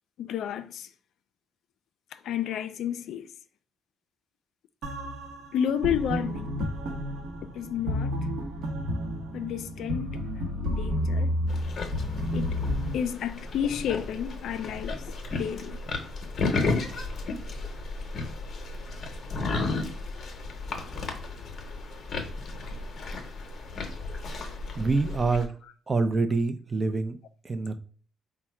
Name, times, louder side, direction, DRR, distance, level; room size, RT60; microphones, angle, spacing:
voice 1, 0.2-0.9 2.1-3.3 5.5-6.7 7.4-8.3 9.3-10.2 10.6-11.4 12.3-12.6 12.9-15.8, left 9 dB, 75° left, 0.3 m, -31 dB
sound 1, 4.8-12.9, equal, 80° right, 0.8 m, -31 dB
sound 2, 11.5-25.5, left 3 dB, 55° left, 0.7 m, -34 dB
voice 2, 24.8-25.5 25.9-27.2 27.4-27.8, right 3 dB, 30° right, 0.5 m, -26 dB
3.6 x 2.1 x 4.4 m
cardioid pair, 90°, 0 cm